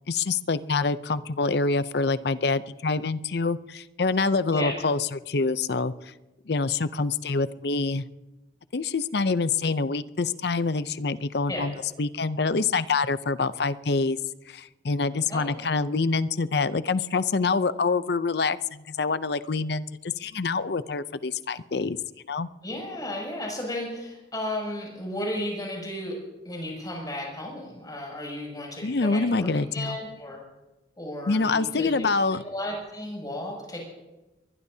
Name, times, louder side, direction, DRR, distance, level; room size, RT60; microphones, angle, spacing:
voice 1, 0.1-6.1 6.5-8.0 8.7-14.2 14.5-22.0 22.3-22.5 28.8-30.0 31.3-32.4, left 4 dB, 60° left, 14 dB, 0.6 m, -26 dB
voice 2, 15.3-15.7 22.6-26.1 26.5-30.4 31.0-33.9, left 1 dB, 20° left, -2 dB, 7.0 m, -34 dB
23.0 x 20.5 x 2.8 m, 1.1 s
head